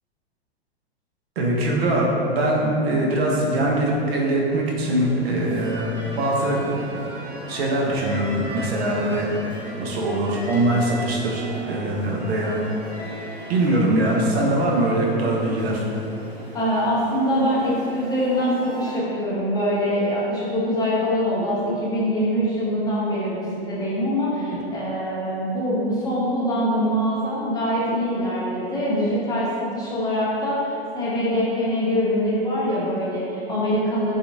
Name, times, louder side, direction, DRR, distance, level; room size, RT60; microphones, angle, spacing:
voice 1, 1.4-6.6 7.5-9.3 9.7-12.6 13.5-15.8, right 1 dB, 70° right, -2 dB, 0.6 m, -22 dB
sound 1, 4.9-19.0, right 1 dB, 55° right, 1.1 m, -37 dB
voice 2, 16.5-29.5 29.7-34.1, equal, 15° left, -7 dB, 0.4 m, -23 dB
2.6 x 2.5 x 2.6 m, 2.7 s
hypercardioid pair, 105°, 31 cm